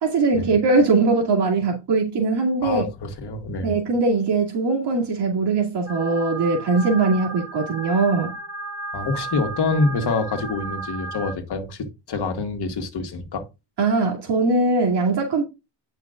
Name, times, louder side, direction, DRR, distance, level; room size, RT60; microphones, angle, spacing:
voice 1, 0.0-2.9 3.6-8.3 13.8-15.4, right 3 dB, 70° right, 2.5 m, -21 dB
voice 2, 2.6-3.7 8.9-13.4, left 3 dB, 65° left, 1.7 m, -26 dB
sound 1, 5.9-11.3, right 3 dB, 85° right, 2.6 m, -34 dB
9.3 x 5.8 x 2.5 m
cardioid pair, 125°, 43 cm